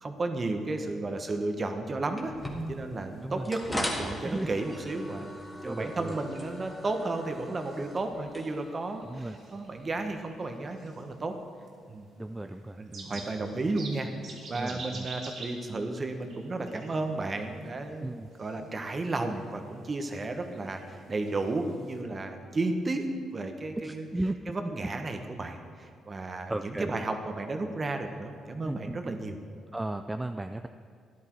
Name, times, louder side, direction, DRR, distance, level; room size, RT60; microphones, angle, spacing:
voice 1, 0.0-2.3 2.7-11.3 11.9-12.1 12.8-14.1 14.5-23.0 23.3-24.1 24.5-29.4, right 2 dB, 35° right, 5 dB, 1.4 m, -33 dB
sound 1, 2.2-10.1, left 1 dB, 15° left, 2.1 m, -40 dB
sound 2, 2.4-22.0, right 3 dB, 65° right, 3.0 m, -51 dB
voice 2, 5.6-6.2 9.0-9.4 12.2-13.2 14.5-15.1 15.7-15.8 18.0-18.3 23.8-24.7 26.5-26.9 28.6-29.2 29.7-30.7, right 1 dB, 10° right, 7 dB, 0.4 m, -35 dB
14.0 x 11.0 x 4.7 m, 2.2 s
cardioid pair, 90°, 0 cm